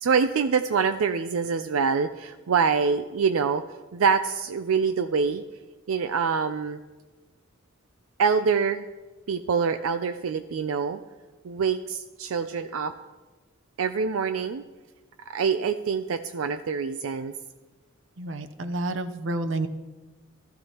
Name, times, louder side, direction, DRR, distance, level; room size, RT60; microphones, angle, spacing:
voice 1, 0.0-3.6 3.9-5.4 5.9-6.8 8.2-8.8 9.3-11.0 11.4-12.9 13.8-14.6 15.3-17.3, right 5 dB, 90° right, 9 dB, 0.4 m, -25 dB
voice 2, 18.2-19.7, right 2 dB, 70° right, 9 dB, 0.7 m, -29 dB
15.0 x 14.0 x 2.9 m, 1.2 s
head